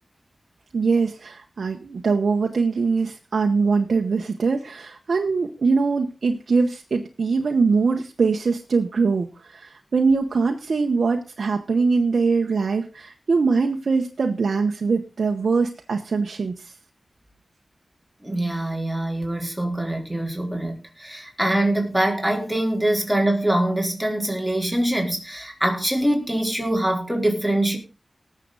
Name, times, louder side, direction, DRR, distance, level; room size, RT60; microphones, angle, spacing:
voice 1, 0.7-16.7, right 4 dB, 85° right, 1.0 m, -22 dB
voice 2, 18.2-27.8, right 1 dB, 5° right, 4.5 m, -24 dB
19.0 x 7.5 x 4.0 m
cardioid pair, 45°, 0 cm